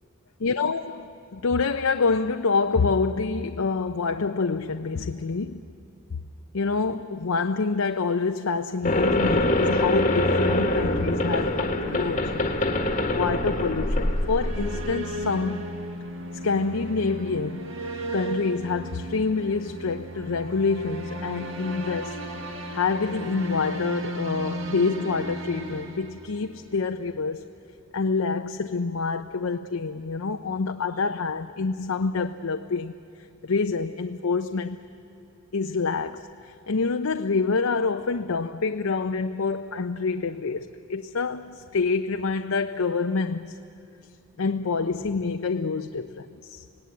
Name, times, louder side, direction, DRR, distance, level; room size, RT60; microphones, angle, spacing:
voice 1, 0.4-5.7 6.5-12.5 13.1-15.7 16.4-17.7 18.1-22.2 22.7-27.4 27.9-32.9 33.4-34.8 35.5-43.6 44.4-46.6, left 4 dB, 80° left, 0.6 m, -27 dB
sound 1, 8.9-14.9, left 1 dB, 35° left, 1.3 m, -24 dB
sound 2, 13.9-26.8, right 1 dB, 65° right, 1.9 m, -35 dB
26.0 x 18.0 x 9.4 m
head